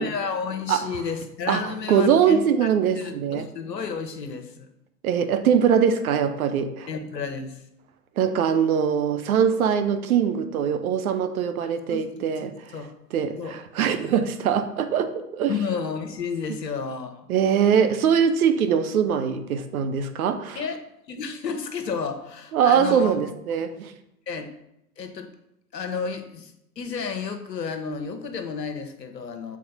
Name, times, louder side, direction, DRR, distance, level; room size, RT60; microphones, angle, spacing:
voice 1, 0.0-2.7 2.9-4.7 6.9-7.6 11.9-12.0 12.4-12.5 12.7-12.9 13.4-13.6 15.5-17.3 20.5-20.8 21.1-23.2 24.3-24.5 25.0-25.3 25.7-29.6, left 5 dB, 80° left, 7 dB, 1.0 m, -31 dB
voice 2, 1.9-3.5 5.0-6.9 8.2-12.8 13.1-15.5 17.3-20.6 22.5-23.9, right 7 dB, 60° right, 8 dB, 0.8 m, -22 dB
7.5 x 4.1 x 4.2 m, 0.81 s
hypercardioid pair, 105°, 49 cm